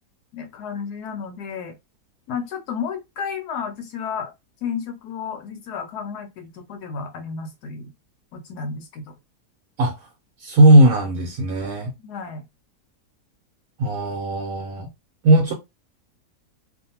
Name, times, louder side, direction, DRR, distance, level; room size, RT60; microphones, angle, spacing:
voice 1, 0.3-1.8 2.3-4.3 4.6-7.9 8.3-9.1 12.0-12.4 14.8-14.9, left 6 dB, 75° left, 1.1 m, -32 dB
voice 2, 9.8-10.1 10.4-11.9 13.8-14.9 15.2-15.5, right 1 dB, 65° right, 1.0 m, -17 dB
2.6 x 2.4 x 2.8 m
omnidirectional pair, 1.7 m